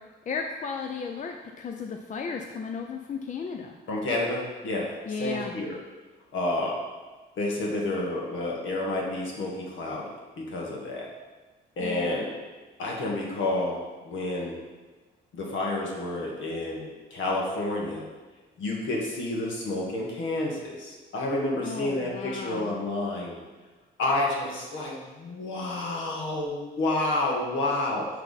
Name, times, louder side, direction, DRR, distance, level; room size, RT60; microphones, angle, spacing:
voice 1, 0.3-3.8 5.1-5.5 11.8-12.2 21.6-22.7, left 5 dB, 40° left, 3 dB, 0.5 m, -34 dB
voice 2, 3.9-4.9 5.2-5.7 6.3-6.8 7.4-10.0 10.4-11.1 11.8-12.3 12.8-14.6 15.3-18.1 18.6-23.4 24.0-28.1, left 2 dB, 75° left, -2 dB, 1.7 m, -29 dB
9.7 x 3.5 x 4.1 m, 1.3 s
cardioid pair, 90°, 20 cm